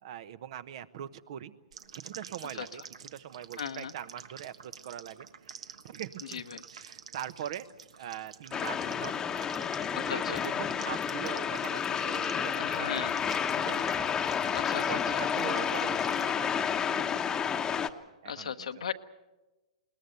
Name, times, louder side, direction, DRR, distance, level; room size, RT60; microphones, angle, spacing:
voice 1, 0.0-1.6 2.0-6.4 6.7-7.7 8.0-9.2 9.9-14.5 14.9-17.6 18.2-18.8, right 10 dB, 60° right, 14 dB, 1.0 m, -42 dB
sound 1, 1.7-16.3, right 7 dB, 75° right, 1.4 m, -49 dB
voice 2, 3.6-3.9 6.3-6.6 9.9-10.4 12.6-13.2 14.5-14.8 18.3-18.9, left 8 dB, 80° left, 9 dB, 1.1 m, -36 dB
sound 2, 8.5-17.9, left 7 dB, 20° left, 1.0 m, -30 dB
21.5 x 19.5 x 8.0 m, 1.1 s
hypercardioid pair, 120°, 3 cm